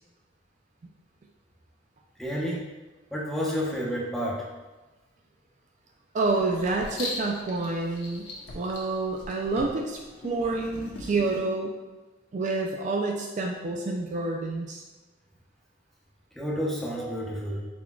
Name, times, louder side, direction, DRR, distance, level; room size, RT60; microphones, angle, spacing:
voice 1, 2.2-2.7 3.1-4.5 16.3-17.6, equal, ahead, -5 dB, 0.8 m, -30 dB
voice 2, 6.1-8.3 8.5-11.7 12.3-14.8, right 3 dB, 45° right, 0 dB, 0.3 m, -28 dB
Writing, 6.2-11.4, left 2 dB, 75° left, 0.9 m, -40 dB
4.4 x 4.1 x 2.3 m, 1.2 s
head